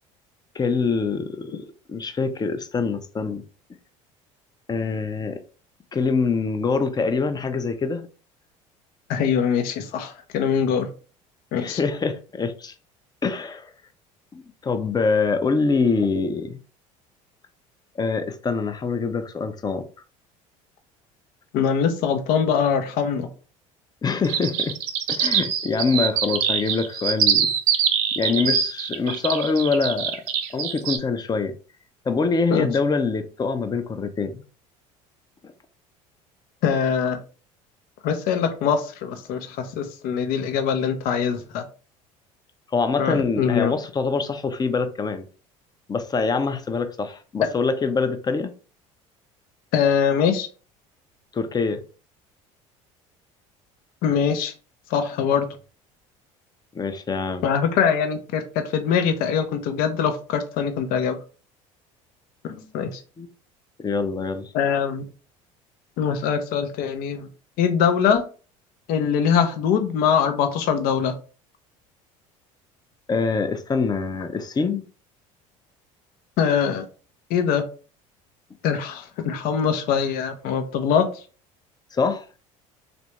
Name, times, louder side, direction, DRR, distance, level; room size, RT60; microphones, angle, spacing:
voice 1, 0.5-1.6 1.9-3.4 4.7-5.4 5.9-8.1 11.6-12.7 13.2-13.7 14.3-16.6 18.0-19.8 24.0-24.8 25.1-27.5 28.2-30.2 30.5-31.5 32.1-34.4 42.7-45.2 45.9-48.5 51.3-51.8 56.7-57.5 63.2-63.3 63.8-64.5 73.1-74.8 81.9-82.2, left 4 dB, 25° left, 0.6 m, -24 dB
voice 2, 9.1-10.9 11.5-11.8 21.5-23.3 32.5-32.7 36.6-37.2 38.0-41.6 43.0-43.7 49.7-50.5 54.0-54.5 54.9-55.5 57.4-58.4 58.7-61.2 62.4-62.9 64.5-65.0 66.0-67.2 67.6-68.2 68.9-71.1 76.4-76.8 77.3-77.6 78.6-81.1, left 7 dB, 65° left, 0.6 m, -22 dB
sound 1, 24.2-31.0, right 8 dB, 65° right, 0.6 m, -23 dB
3.3 x 2.5 x 3.0 m
hypercardioid pair, 75°, 17 cm